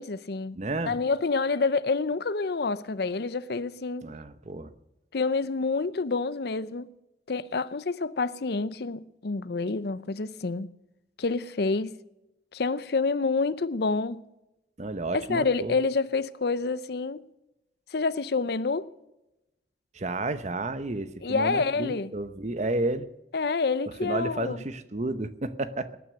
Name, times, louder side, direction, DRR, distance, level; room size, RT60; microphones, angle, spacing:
voice 1, 0.0-0.6 0.9-4.0 5.1-6.9 7.3-10.7 11.2-12.0 12.5-14.2 15.1-17.3 17.9-18.9 21.2-22.1 23.3-24.6, left 4 dB, 60° left, 0.6 m, -28 dB
voice 2, 0.6-1.0 4.0-4.7 14.8-15.8 19.9-23.1 24.0-26.0, right 2 dB, 40° right, 0.9 m, -31 dB
20.0 x 9.6 x 6.4 m
head